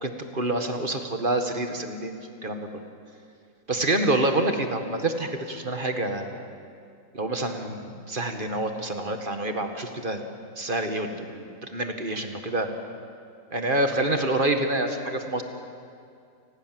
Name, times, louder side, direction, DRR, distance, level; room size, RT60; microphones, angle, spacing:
voice 1, 0.0-2.7 3.7-6.5 7.1-10.2 10.6-12.7 13.5-15.4, right 2 dB, 30° right, 6 dB, 1.8 m, -27 dB
28.5 x 20.0 x 7.8 m, 2.4 s
omnidirectional pair, 2.1 m